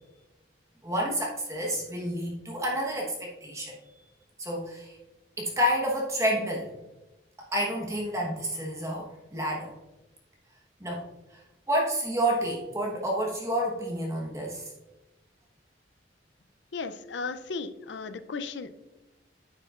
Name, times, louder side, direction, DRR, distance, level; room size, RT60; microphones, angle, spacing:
voice 1, 0.8-3.7 4.4-5.0 5.4-6.7 7.5-9.7 10.8-11.0 11.7-14.6, equal, 15° right, -2 dB, 1.1 m, -29 dB
voice 2, 16.7-18.7, left 4 dB, 80° left, 11 dB, 0.5 m, -35 dB
9.5 x 6.4 x 2.4 m, 1.1 s
head